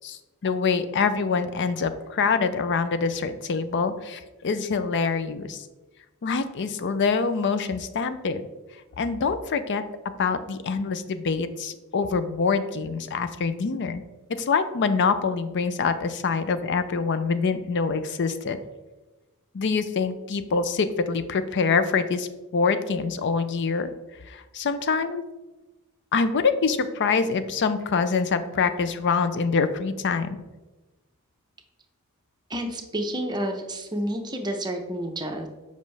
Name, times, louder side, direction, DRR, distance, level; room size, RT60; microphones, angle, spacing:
voice 1, 0.0-5.7 6.2-8.5 9.0-9.8 10.2-14.0 14.3-18.6 19.5-23.9 24.3-25.2 26.1-30.3, left 5 dB, 55° left, 11 dB, 0.5 m, -25 dB
voice 2, 32.5-35.5, right 1 dB, 20° right, 4 dB, 0.7 m, -30 dB
7.4 x 5.2 x 3.3 m, 1.1 s
head